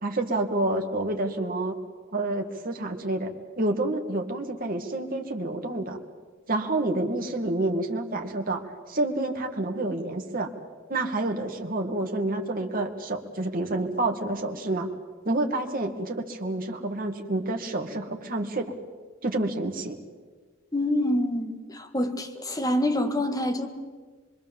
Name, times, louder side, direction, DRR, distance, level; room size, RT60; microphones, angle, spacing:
voice 1, 0.0-1.8 2.1-6.0 6.5-10.5 10.9-14.9 15.3-18.7 19.2-20.0, right 2 dB, 45° right, 3 dB, 2.1 m, -28 dB
voice 2, 20.7-23.7, left 1 dB, 20° left, 4 dB, 1.9 m, -26 dB
25.0 x 23.5 x 7.4 m, 1.4 s
head